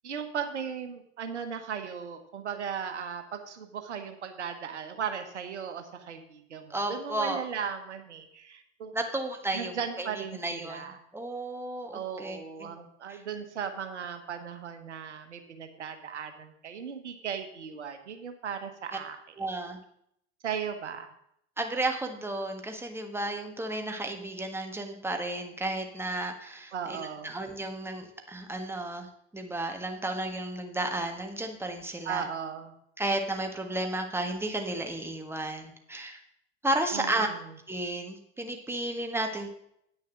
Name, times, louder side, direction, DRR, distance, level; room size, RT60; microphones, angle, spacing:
voice 1, 0.0-8.9 9.5-11.0 11.9-19.2 20.4-21.1 26.7-27.3 32.0-32.7 36.9-37.4, right 7 dB, 85° right, 7 dB, 1.1 m, -37 dB
voice 2, 6.7-7.4 8.9-12.7 13.1-13.2 19.4-19.8 21.6-29.1 29.3-32.2 33.0-36.2 36.6-37.3 37.7-39.5, right 1 dB, 5° right, 4 dB, 1.6 m, -33 dB
9.1 x 6.5 x 6.3 m, 0.72 s
hypercardioid pair, 75°, 34 cm